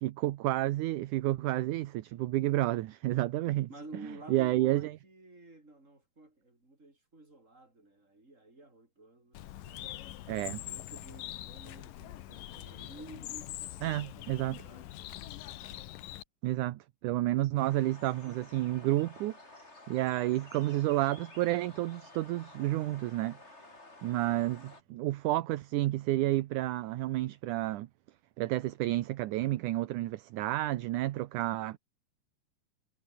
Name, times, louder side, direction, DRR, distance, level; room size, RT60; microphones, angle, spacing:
voice 1, 0.0-3.7 4.3-4.9 10.3-10.6 13.8-14.6 16.4-19.6 19.9-23.4 24.0-27.9 28.4-31.8, right 16 dB, 70° right, 2.1 m, -30 dB
voice 2, 3.7-10.0 10.4-14.9, right 2 dB, 20° right, 6.6 m, -52 dB
Bird, 9.3-16.2, left 14 dB, 75° left, 2.7 m, -43 dB
sound 1, 17.6-24.8, left 2 dB, 20° left, 4.1 m, -53 dB
omnidirectional pair, 4.1 m